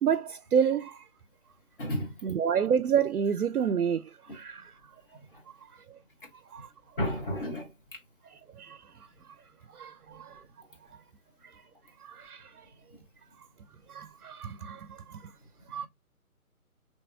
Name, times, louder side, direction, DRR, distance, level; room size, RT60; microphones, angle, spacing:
voice 1, 0.0-1.1 2.2-4.7 6.5-6.7 8.6-9.1 9.7-10.4 12.0-12.7 13.9-15.2 15.7-15.9, right 7 dB, 75° right, 0.5 m, -29 dB
voice 2, 1.8-2.2 5.1-5.4 7.0-8.0 15.7-15.9, equal, 35° left, 1.2 m, -33 dB
5.5 x 3.0 x 2.2 m
figure-of-eight pair, 155°, 45 cm